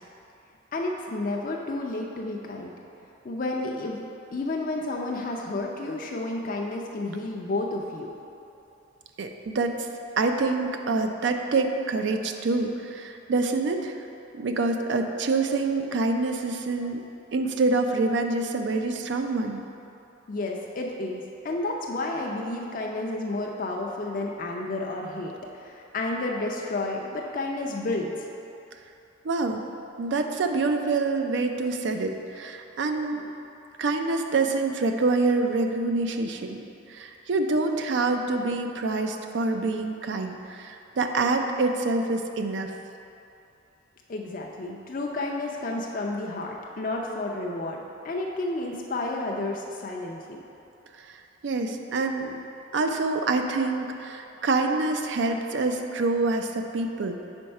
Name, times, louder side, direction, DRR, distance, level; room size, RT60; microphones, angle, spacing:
voice 1, 0.7-2.7 3.2-8.1 20.3-28.3 44.1-47.8 48.0-50.4, left 2 dB, 45° left, -1 dB, 0.4 m, -31 dB
voice 2, 9.2-9.9 10.2-14.0 14.3-17.0 17.3-19.6 29.2-29.6 30.0-33.3 33.8-36.6 36.9-42.7 51.0-51.1 51.4-52.4 52.7-57.3, right 3 dB, 65° right, 5 dB, 0.4 m, -26 dB
4.7 x 4.4 x 5.3 m, 2.7 s
head